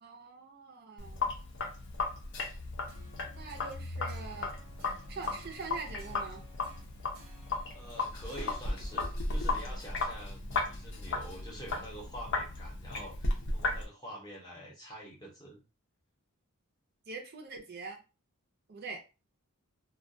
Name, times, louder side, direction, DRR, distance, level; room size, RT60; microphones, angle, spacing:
voice 1, 0.0-1.4 3.3-4.5 5.1-6.4 17.1-18.0 18.7-19.0, right 4 dB, 45° right, 2 dB, 0.5 m, -43 dB
Sink (filling or washing), 1.0-13.8, left 3 dB, 60° left, 0.5 m, -35 dB
sound 1, 2.9-9.0, right 1 dB, 90° right, 0.8 m, -57 dB
voice 2, 7.7-15.6, right 1 dB, 20° left, -2 dB, 0.7 m, -46 dB
2.3 x 2.1 x 2.6 m, 0.31 s
head